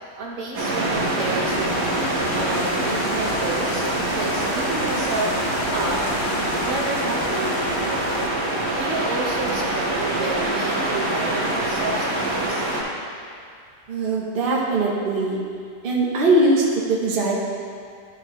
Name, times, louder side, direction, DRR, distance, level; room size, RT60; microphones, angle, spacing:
voice 1, 0.1-5.3 5.7-6.0 6.3-7.9 8.8-12.6, right 2 dB, 60° right, -3 dB, 1.5 m, -31 dB
sound 1, 0.5-12.8, right 1 dB, 75° right, 1.9 m, -24 dB
sound 2, 1.4-8.3, left 6 dB, 75° left, 0.6 m, -35 dB
voice 2, 13.9-15.4 15.8-17.3, right 2 dB, 40° right, -3 dB, 1.0 m, -21 dB
11.5 x 6.1 x 3.1 m, 2.2 s
omnidirectional pair, 1.7 m